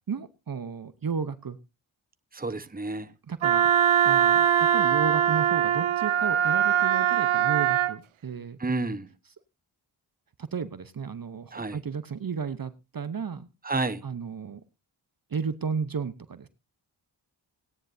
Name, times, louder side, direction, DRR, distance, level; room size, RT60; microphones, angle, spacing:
voice 1, 0.1-1.6 3.3-8.6 10.4-13.5 14.0-14.6 15.3-16.5, right 6 dB, 45° right, 0.9 m, -33 dB
voice 2, 2.3-3.1 8.6-9.1 11.5-11.8 13.6-14.0, right 3 dB, 20° right, 1.0 m, -30 dB
Wind instrument woodwind instrument, 3.4-7.9, right 10 dB, 90° right, 0.7 m, -22 dB
17.5 x 9.8 x 2.7 m
cardioid pair, 40°, 47 cm